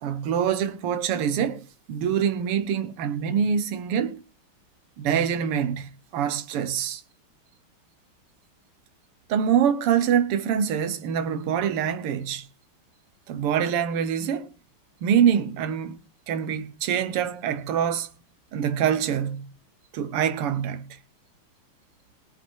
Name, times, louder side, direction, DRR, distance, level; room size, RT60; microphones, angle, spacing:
voice 1, 0.0-4.2 5.0-7.0 9.3-12.5 13.3-14.5 15.0-16.0 16.3-18.1 18.5-19.5 19.9-21.0, right 8 dB, 90° right, 2.0 m, -25 dB
19.0 x 6.6 x 4.7 m
omnidirectional pair, 2.4 m